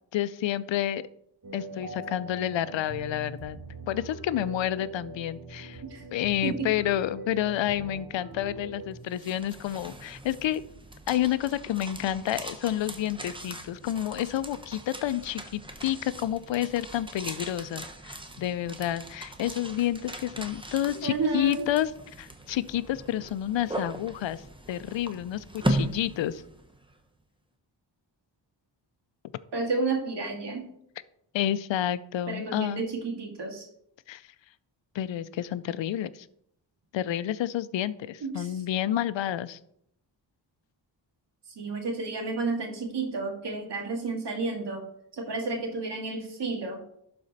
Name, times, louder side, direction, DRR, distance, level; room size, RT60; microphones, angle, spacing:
voice 1, 0.1-1.0 1.5-3.6 3.9-5.8 6.1-10.6 11.1-21.9 22.2-24.4 24.7-26.4 31.3-32.9 34.1-34.2 34.9-36.3 36.9-39.6, left 12 dB, 75° left, 16 dB, 0.6 m, -29 dB
sound 1, 1.4-9.0, right 2 dB, 45° right, 1.8 m, -42 dB
sound 2, 8.9-26.9, right 1 dB, 10° right, 0.9 m, -38 dB
voice 2, 21.0-21.7 29.5-30.7 32.3-33.7 38.2-38.6 41.6-44.8 45.1-46.8, right 3 dB, 60° right, 1 dB, 2.1 m, -31 dB
11.5 x 4.3 x 4.1 m, 0.74 s
cardioid pair, 80°, 46 cm